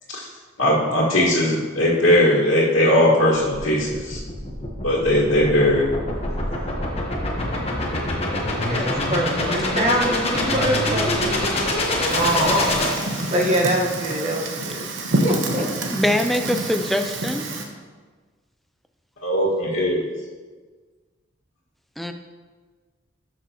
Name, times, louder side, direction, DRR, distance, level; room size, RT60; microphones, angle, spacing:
voice 1, 0.6-4.2 4.8-5.9 19.2-20.1, left 1 dB, 85° left, -8 dB, 1.9 m, -19 dB
sound 1, 3.3-13.7, left 1 dB, 30° left, 1.2 m, -25 dB
voice 2, 8.6-11.6 12.1-12.8 13.3-14.8 15.2-15.7, right 1 dB, 35° right, -2 dB, 1.4 m, -24 dB
sound 2, 10.3-11.7, right 2 dB, 15° right, 0.9 m, -32 dB
Fire, 12.1-17.6, right 2 dB, 75° right, 1.0 m, -28 dB
voice 3, 15.9-17.5 22.0-22.1, left 1 dB, ahead, 7 dB, 0.4 m, -23 dB
12.5 x 6.1 x 3.0 m, 1.4 s
head